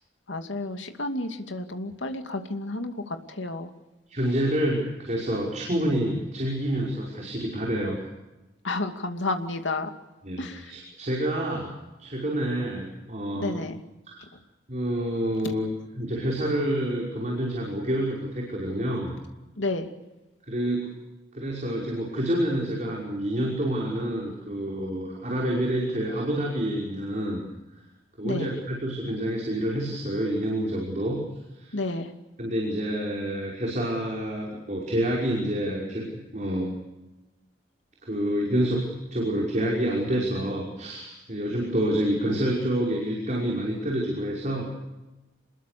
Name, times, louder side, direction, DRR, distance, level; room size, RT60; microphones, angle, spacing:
voice 1, 0.3-3.7 8.6-9.9 10.4-10.8 13.4-13.8 14.3-14.4 15.4-15.5 19.6-19.9 28.2-28.5 31.7-32.1, left 2 dB, 80° left, 6 dB, 2.5 m, -31 dB
voice 2, 4.1-8.0 10.2-11.7 12.0-13.6 14.1-14.3 14.7-15.7 16.0-19.1 20.5-20.9 21.3-27.4 28.2-31.2 31.6-31.7 32.4-36.1 36.3-36.7 38.0-44.7, right 1 dB, 40° right, -2 dB, 5.6 m, -28 dB
27.5 x 21.5 x 6.8 m, 1.0 s
head